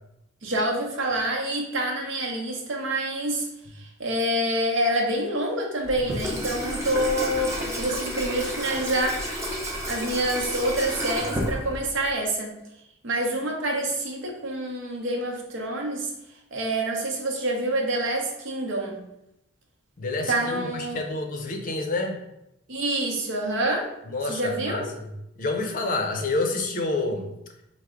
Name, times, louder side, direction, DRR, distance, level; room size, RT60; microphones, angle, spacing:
voice 1, 0.4-3.5 3.7-9.2 9.9-12.6 13.0-16.1 16.5-19.0 20.3-21.0 22.7-23.9 24.2-24.9, right 1 dB, 70° right, 1 dB, 0.7 m, -27 dB
Water tap faucet / Sink (filling or washing), 5.8-12.1, equal, 15° right, 0.6 m, -31 dB
voice 2, 20.0-22.2 24.1-25.0 25.4-27.3, left 2 dB, 45° left, 3 dB, 0.5 m, -28 dB
4.5 x 2.0 x 3.6 m, 0.85 s
head